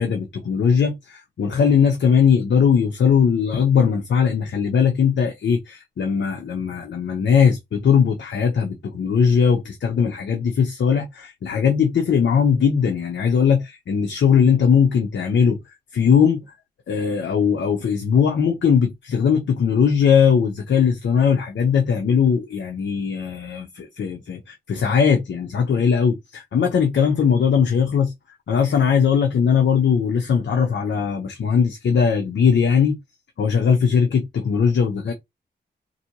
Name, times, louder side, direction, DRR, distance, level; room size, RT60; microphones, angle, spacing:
voice 1, 0.0-15.6 15.9-16.4 16.9-28.1 28.5-33.0 33.4-35.1, left 7 dB, 80° left, 0.9 m, -19 dB
4.2 x 2.7 x 3.0 m
cardioid pair, 65°, 19 cm